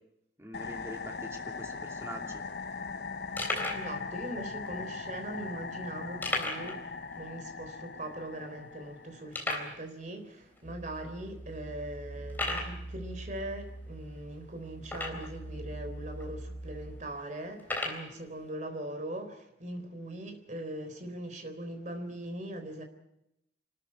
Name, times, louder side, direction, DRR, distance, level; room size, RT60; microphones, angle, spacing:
voice 1, 0.4-2.4, equal, 15° right, 2.7 m, -44 dB
sound 1, 0.5-9.4, left 4 dB, 60° left, 0.8 m, -40 dB
sound 2, 1.9-2.0 2.2-2.3 2.9-3.0 3.4-3.9 4.6-4.7 6.2-6.8 7.1-7.2 7.6-7.7 8.3-8.4 9.3-9.8 10.6-10.7 11.2-11.4 12.3-12.8 14.8-15.4 16.2-16.3 17.6-18.1, left 2 dB, 10° left, 3.6 m, -34 dB
voice 2, 3.7-22.8, right 1 dB, 40° right, 3.8 m, -41 dB
sound 3, 10.6-17.0, right 1 dB, 35° left, 3.1 m, -43 dB
26.0 x 13.5 x 9.9 m
head